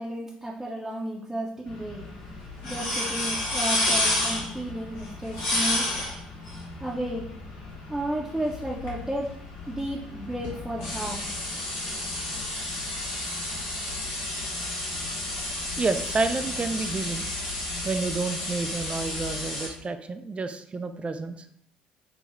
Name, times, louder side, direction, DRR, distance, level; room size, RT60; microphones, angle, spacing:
voice 1, 0.0-2.1 2.6-5.9 6.8-7.3 7.9-9.3 9.7-11.2, right 1 dB, 5° right, -5 dB, 0.8 m, -33 dB
sound 1, 1.7-19.7, left 1 dB, 75° left, 1.0 m, -31 dB
voice 2, 15.8-17.2 17.8-21.5, right 4 dB, 30° right, 9 dB, 0.4 m, -29 dB
6.4 x 2.3 x 3.0 m, 0.66 s
figure-of-eight pair, 50°, 4 cm